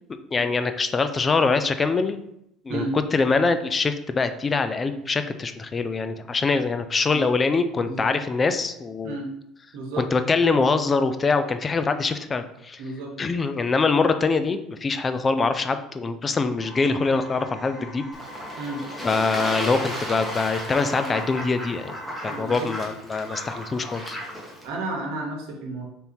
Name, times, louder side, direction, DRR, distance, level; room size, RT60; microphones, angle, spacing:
voice 1, 0.3-2.2 2.7-2.8 3.1-9.2 10.0-12.8 13.2-18.1 19.0-22.0 22.2-24.2, left 4 dB, 25° left, 9 dB, 0.4 m, -24 dB
voice 2, 7.7-8.1 9.0-9.3 9.7-10.1 12.8-13.1 18.6-18.9 22.3-22.7 24.6-25.9, right 2 dB, 75° right, 1 dB, 1.0 m, -32 dB
sound 1, 16.6-22.4, left 1 dB, 40° left, 1.6 m, -41 dB
Fowl / Bird / Water, 18.1-24.7, equal, ahead, 1.1 m, -34 dB
3.5 x 2.8 x 4.2 m, 0.79 s
supercardioid pair, 110°, 0 cm